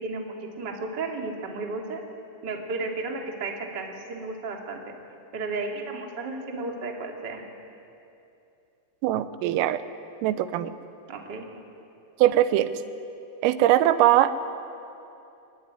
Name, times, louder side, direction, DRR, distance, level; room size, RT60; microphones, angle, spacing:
voice 1, 0.0-2.0 2.4-4.9 5.3-7.4 11.1-11.5, right 3 dB, 30° right, 1 dB, 2.1 m, -33 dB
voice 2, 9.0-9.8 10.2-10.8 12.2-12.7 13.4-14.3, right 13 dB, 90° right, 12 dB, 3.6 m, -21 dB
23.5 x 22.5 x 9.7 m, 2.7 s
omnidirectional pair, 5.8 m